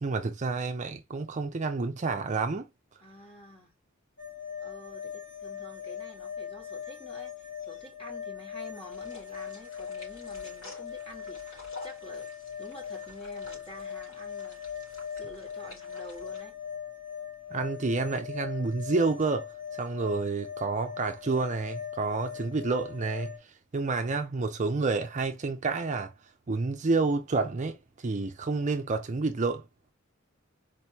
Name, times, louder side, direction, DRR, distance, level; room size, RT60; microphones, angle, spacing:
voice 1, 0.0-2.7 17.5-19.5 19.8-23.3 23.7-26.1 26.5-27.8 28.0-29.6, right 3 dB, 35° right, 0.5 m, -29 dB
voice 2, 3.0-3.7 4.6-12.3 12.6-14.6 15.1-16.6, equal, 30° left, 1.8 m, -48 dB
sound 1, 4.2-23.4, left 8 dB, 60° left, 2.5 m, -40 dB
sound 2, 8.9-16.4, left 1 dB, 75° left, 3.2 m, -52 dB
4.4 x 3.0 x 2.9 m
head